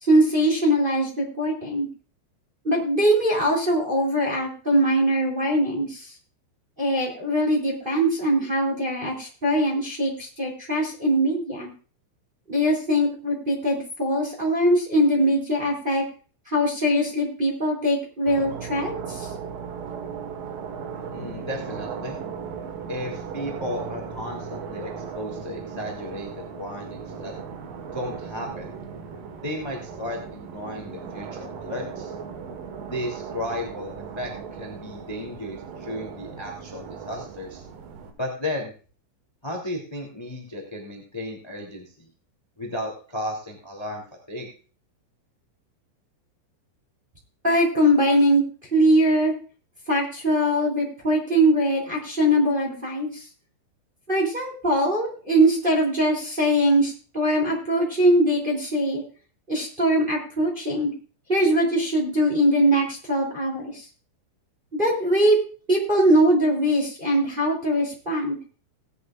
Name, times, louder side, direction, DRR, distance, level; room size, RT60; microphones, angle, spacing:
voice 1, 0.0-1.9 2.6-6.1 6.8-11.7 12.5-16.0 16.5-19.3 47.4-48.4 48.7-49.3 49.9-53.2 54.1-59.0 59.5-60.9 61.3-63.8 64.7-65.4 65.7-68.4, equal, 15° right, -2 dB, 2.2 m, -22 dB
sound 1, 18.3-38.1, right 6 dB, 65° right, 2.5 m, -37 dB
voice 2, 21.1-22.2 22.9-27.3 27.9-28.7 29.4-32.1 32.9-37.6 38.2-38.7 39.4-42.1 42.6-44.0 44.3-44.5, left 1 dB, 10° left, 0 dB, 1.4 m, -34 dB
19.0 x 9.8 x 2.5 m, 0.38 s
omnidirectional pair, 5.6 m